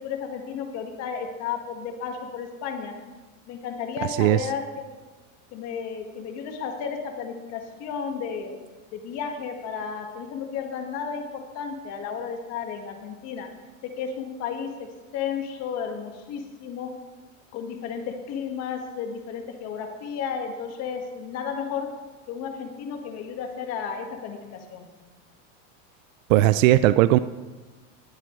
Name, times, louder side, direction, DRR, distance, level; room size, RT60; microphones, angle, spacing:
voice 1, 0.0-2.9 3.5-4.9 5.5-8.6 8.9-13.5 14.0-16.9 17.5-21.9 22.3-24.9, left 6 dB, 40° left, 4 dB, 1.7 m, -33 dB
voice 2, 26.3-27.2, right 15 dB, 75° right, 14 dB, 0.5 m, -17 dB
19.5 x 8.8 x 3.2 m, 1.3 s
supercardioid pair, 160°, 40 cm